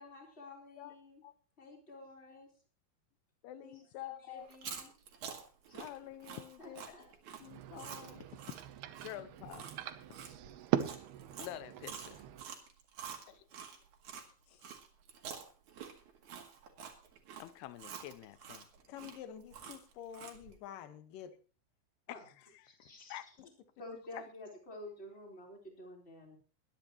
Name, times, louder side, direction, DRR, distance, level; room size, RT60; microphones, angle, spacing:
voice 1, 0.0-1.2 1.6-2.5 3.6-4.9 5.7-5.8 6.6-7.2 22.1-22.2 22.6-23.2 23.8-26.4, left 2 dB, 15° left, 3.6 m, -51 dB
voice 2, 3.4-4.5 5.7-6.9 7.4-8.3 9.0-9.7 11.4-12.2 13.3-13.5 17.4-18.7 22.1-22.8 23.1-23.3 24.1-24.2, left 14 dB, 85° left, 2.3 m, -48 dB
Chewing mastication, 4.4-14.3 14.6-20.5, right 7 dB, 50° right, 2.6 m, -48 dB
sound 1, 7.4-12.5, right 12 dB, 75° right, 2.4 m, -40 dB
voice 3, 18.9-21.3 23.4-23.5, left 9 dB, 65° left, 2.3 m, -48 dB
22.5 x 10.5 x 3.0 m
omnidirectional pair, 5.5 m